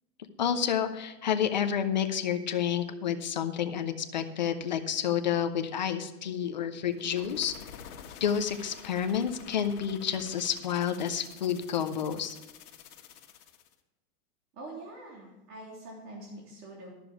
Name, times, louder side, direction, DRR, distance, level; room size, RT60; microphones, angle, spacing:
voice 1, 0.4-7.5 8.2-12.4, left 8 dB, 35° left, 7 dB, 0.4 m, -29 dB
sound 1, 6.9-13.7, left 8 dB, 75° left, 1.7 m, -49 dB
voice 2, 14.5-16.9, right 2 dB, 90° right, -3 dB, 3.4 m, -45 dB
12.0 x 6.8 x 6.0 m, 1.1 s
supercardioid pair, 175°, 46 cm